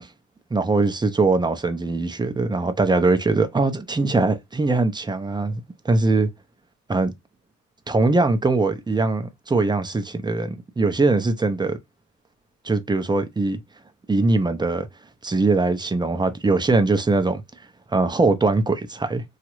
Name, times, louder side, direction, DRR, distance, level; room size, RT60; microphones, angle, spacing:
voice 1, 0.5-6.3 6.9-7.1 7.9-11.8 12.6-13.6 14.1-14.9 15.2-17.4 17.9-19.2, right 3 dB, 15° right, 0.6 m, -21 dB
3.0 x 2.4 x 2.9 m
cardioid pair, 90°, 30 cm